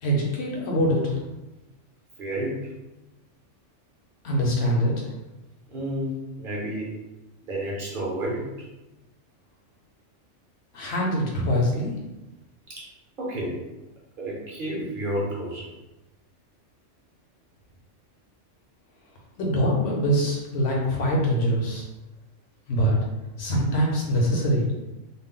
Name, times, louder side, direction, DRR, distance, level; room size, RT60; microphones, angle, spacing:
voice 1, 0.0-1.2 4.2-5.1 10.7-11.9 19.4-21.9 22.7-23.0 23.4-24.7, equal, 60° left, -2 dB, 0.9 m, -23 dB
voice 2, 2.2-2.6 5.7-7.0 7.4-8.5 12.8-12.9 13.2-13.6 14.2-15.7, right 1 dB, 50° right, -4 dB, 0.7 m, -30 dB
2.4 x 2.0 x 3.6 m, 1.0 s
omnidirectional pair, 1.3 m